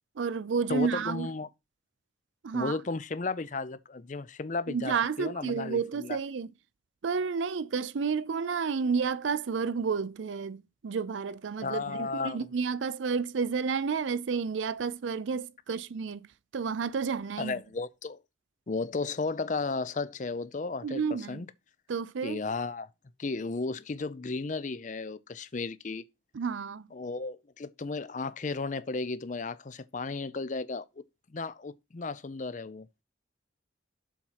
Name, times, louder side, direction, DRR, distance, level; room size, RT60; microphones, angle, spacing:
voice 1, 0.2-1.3 2.4-2.8 4.7-6.5 7.0-16.2 16.5-17.5 20.8-21.4 21.9-22.4 26.3-26.9, right 5 dB, 75° right, 0.5 m, -31 dB
voice 2, 0.7-1.5 2.5-6.2 11.6-12.5 17.4-18.2 18.7-21.5 22.2-22.9 23.2-26.0 26.9-30.9 31.3-32.9, left 3 dB, 40° left, 0.5 m, -34 dB
7.1 x 4.3 x 5.6 m
head